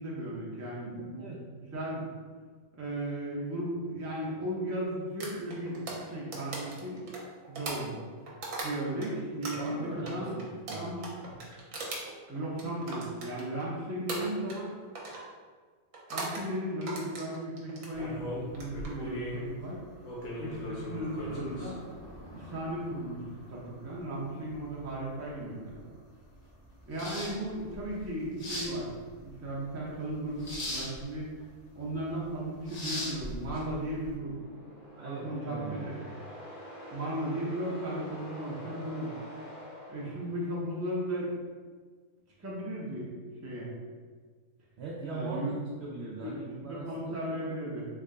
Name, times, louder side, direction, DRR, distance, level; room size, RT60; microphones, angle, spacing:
voice 1, 0.0-1.3 1.7-2.1 2.8-7.0 7.5-8.0 8.6-11.4 12.3-14.7 16.1-19.8 20.4-21.8 22.3-25.8 26.9-28.9 29.2-31.3 31.7-34.4 35.0-36.0 36.9-39.1 39.9-41.3 42.4-43.1 43.4-43.7 45.1-45.5 46.2-46.3 46.6-47.9, right 1 dB, 20° right, -6 dB, 0.4 m, -36 dB
voice 2, 0.9-1.4 9.5-10.9 34.9-36.1 44.8-46.9 47.3-47.4, right 2 dB, 80° right, -4 dB, 0.5 m, -40 dB
sound 1, 5.2-9.1 9.4-13.7 14.1-14.7 15.0-15.3 15.9-16.5 16.8-17.9 18.5-18.9, right 3 dB, 65° right, 1.1 m, -39 dB
sound 2, 17.9-34.1, left 1 dB, 65° left, 1.3 m, -41 dB
sound 3, 33.8-40.8, equal, 80° left, 0.4 m, -46 dB
3.6 x 2.2 x 3.7 m, 1.5 s
omnidirectional pair, 1.6 m